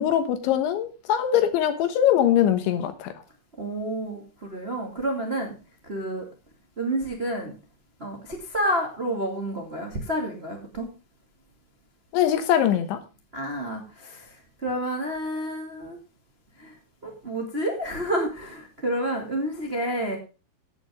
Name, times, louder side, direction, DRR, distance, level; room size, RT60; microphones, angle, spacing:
voice 1, 0.0-3.1 12.1-13.0, left 10 dB, 70° left, 3.4 m, -22 dB
voice 2, 3.6-5.5 5.9-6.2 6.8-7.5 8.0-10.9 13.3-14.2 14.6-16.0 16.6-16.7 17.0-20.2, right 1 dB, 40° right, 0.8 m, -29 dB
15.5 x 8.7 x 3.6 m
omnidirectional pair, 5.8 m